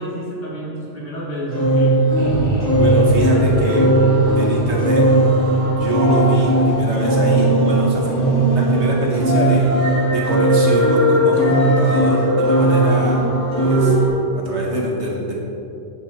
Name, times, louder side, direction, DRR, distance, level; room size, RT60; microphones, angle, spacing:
voice 1, 0.0-2.0, equal, 70° left, -6 dB, 3.2 m, -29 dB
sound 1, 1.5-14.1, right 1 dB, 80° right, 2.7 m, -17 dB
sound 2, 2.2-9.3, right 1 dB, 40° left, 2.0 m, -26 dB
voice 2, 2.8-3.9 4.4-5.1 5.7-9.7 10.1-13.2 13.5-13.9 14.3-15.3, right 1 dB, 65° right, -3 dB, 2.0 m, -23 dB
11.5 x 8.8 x 4.5 m, 2.9 s
omnidirectional pair, 1.3 m